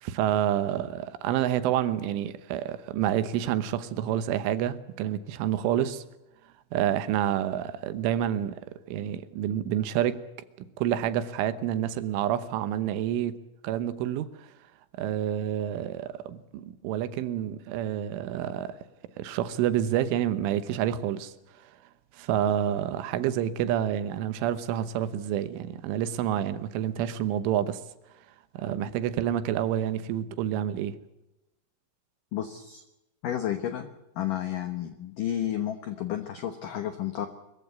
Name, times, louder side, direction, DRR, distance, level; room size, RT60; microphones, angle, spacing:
voice 1, 0.0-6.0 6.7-8.6 8.9-10.2 10.8-13.4 13.6-14.5 15.0-18.8 19.2-21.3 22.1-27.8 28.6-31.0, right 11 dB, 80° right, 3.4 m, -28 dB
voice 2, 32.3-32.8 33.2-33.9 34.2-37.3, left 11 dB, 90° left, 1.8 m, -31 dB
23.5 x 15.0 x 9.6 m
omnidirectional pair, 5.8 m